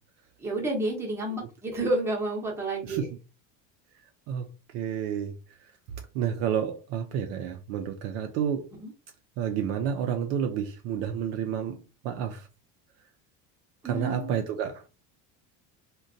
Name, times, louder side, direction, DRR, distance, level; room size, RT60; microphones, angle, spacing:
voice 1, 0.4-3.1 8.8-8.9 13.8-14.4, right 2 dB, 5° right, 0.7 m, -30 dB
voice 2, 4.7-5.4 6.1-8.7 9.4-12.5 13.8-14.9, right 8 dB, 50° right, 0.4 m, -30 dB
3.8 x 2.2 x 2.6 m
cardioid pair, 175°, 34 cm